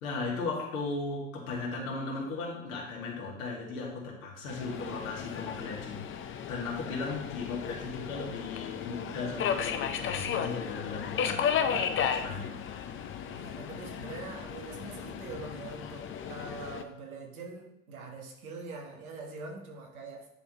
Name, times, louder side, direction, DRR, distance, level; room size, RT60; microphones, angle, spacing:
voice 1, 0.0-12.5 15.8-16.0, left 3 dB, 80° left, -2 dB, 2.2 m, -37 dB
Subway metro underground, 4.5-16.8, left 7 dB, 30° left, 0.6 m, -34 dB
sound 1, 11.4-16.6, left 4 dB, 60° left, 1.4 m, -55 dB
voice 2, 13.3-20.3, right 3 dB, 90° right, 1 dB, 1.4 m, -43 dB
10.0 x 3.8 x 3.1 m, 0.84 s
hypercardioid pair, 85°, 41 cm